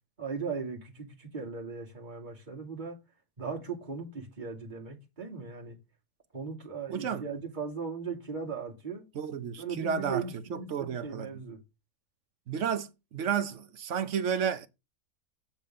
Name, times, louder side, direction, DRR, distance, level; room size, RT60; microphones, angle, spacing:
voice 1, 0.2-3.0 3.4-5.8 6.3-9.0 9.6-11.6, right 5 dB, 30° right, 2.8 m, -38 dB
voice 2, 6.9-7.2 9.1-11.3 12.5-14.7, right 7 dB, 60° right, 1.1 m, -32 dB
7.7 x 7.1 x 3.7 m
omnidirectional pair, 1.5 m